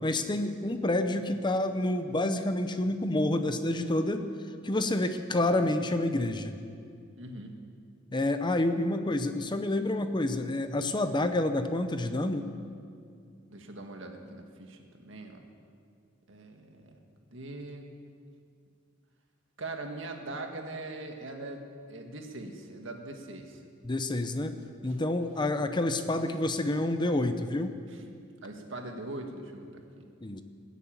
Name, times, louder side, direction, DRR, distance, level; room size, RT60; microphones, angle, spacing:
voice 1, 0.0-4.2 4.6-6.6 8.1-12.5 23.8-24.6 24.8-27.7 30.2-30.4, left 1 dB, 25° left, 8 dB, 0.7 m, -28 dB
voice 2, 7.2-7.5 13.5-15.4 16.3-17.0 17.3-18.0 19.6-23.6 24.9-25.0 27.9-28.0 28.4-30.1, right 2 dB, 65° right, 3 dB, 1.8 m, -41 dB
19.5 x 8.4 x 8.7 m, 2.3 s
head